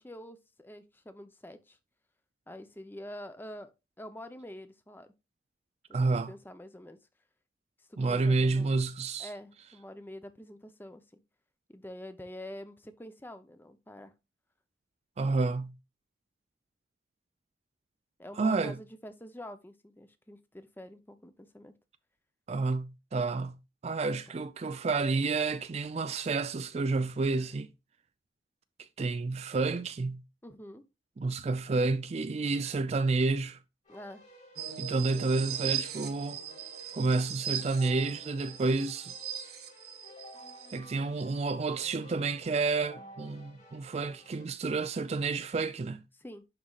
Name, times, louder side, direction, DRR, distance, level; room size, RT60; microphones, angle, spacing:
voice 1, 0.0-1.8 2.5-3.7 4.0-5.1 5.9-6.0 6.3-7.0 7.8-8.7 9.2-11.2 11.7-14.1 18.2-21.8 30.4-30.8 33.9-34.2 46.1-46.4, left 1 dB, 10° left, 0.6 m, -46 dB
voice 2, 5.9-6.3 8.0-9.3 15.2-15.7 18.4-18.8 22.5-23.6 23.8-27.7 29.0-30.2 31.2-33.6 34.8-36.4 36.9-39.1 40.7-46.0, right 3 dB, 35° right, 0.3 m, -30 dB
Keyboard (musical), 33.8-44.5, equal, 40° left, 2.6 m, -53 dB
sound 1, 34.6-40.8, right 9 dB, 60° right, 1.3 m, -39 dB
11.0 x 4.2 x 2.4 m
head